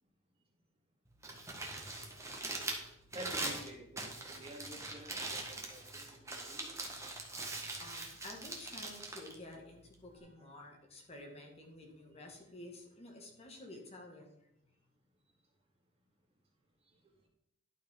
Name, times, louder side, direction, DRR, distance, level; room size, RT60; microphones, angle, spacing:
Crumpling crinkling, 1.1-10.2, right 2 dB, 15° right, 1.6 m, -42 dB
voice 1, 3.1-6.7 10.1-10.5 16.9-17.0, right 1 dB, 30° right, -1 dB, 2.3 m, -51 dB
voice 2, 7.8-14.5, left 1 dB, 30° left, 1 dB, 1.8 m, -51 dB
11.5 x 5.2 x 5.4 m, 0.76 s
head